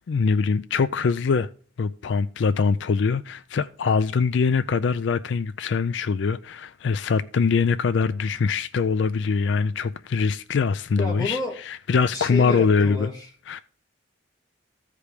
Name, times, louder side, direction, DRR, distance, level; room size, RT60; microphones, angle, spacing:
voice 1, 0.1-1.5 1.8-13.1 13.5-13.6, left 5 dB, 70° left, 0.4 m, -23 dB
voice 2, 11.0-11.6 12.1-13.3, left 2 dB, 20° left, 3.0 m, -30 dB
14.5 x 5.0 x 5.0 m
head